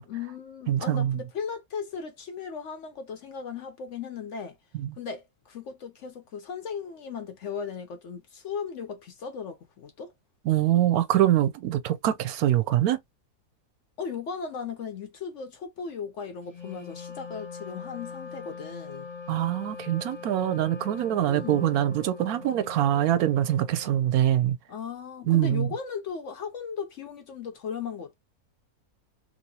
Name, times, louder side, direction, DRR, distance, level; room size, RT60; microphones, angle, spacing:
voice 1, 0.0-4.6 5.0-10.1 14.0-19.1 21.3-21.7 24.7-28.1, left 6 dB, 60° left, 0.8 m, -37 dB
voice 2, 0.7-1.1 4.7-5.0 10.5-13.0 19.3-24.6 25.3-25.7, right 12 dB, 75° right, 1.0 m, -24 dB
Wind instrument woodwind instrument, 16.5-24.3, left 5 dB, 20° left, 0.9 m, -42 dB
2.9 x 2.8 x 2.7 m
omnidirectional pair, 1.6 m